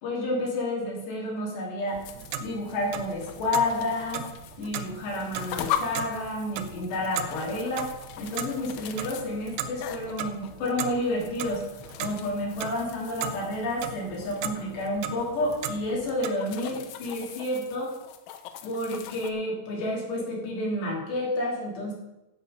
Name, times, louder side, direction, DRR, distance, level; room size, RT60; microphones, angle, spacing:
voice 1, 0.0-2.0 2.4-4.3 4.6-7.9 8.2-11.6 12.0-17.9 18.6-21.9, left 1 dB, 60° left, -3 dB, 4.8 m, -30 dB
sound 1, 1.9-19.3, left 10 dB, 80° left, 3.0 m, -40 dB
Clock, 1.9-16.3, right 8 dB, 85° right, 3.4 m, -38 dB
13.0 x 8.0 x 5.7 m, 0.94 s
omnidirectional pair, 5.9 m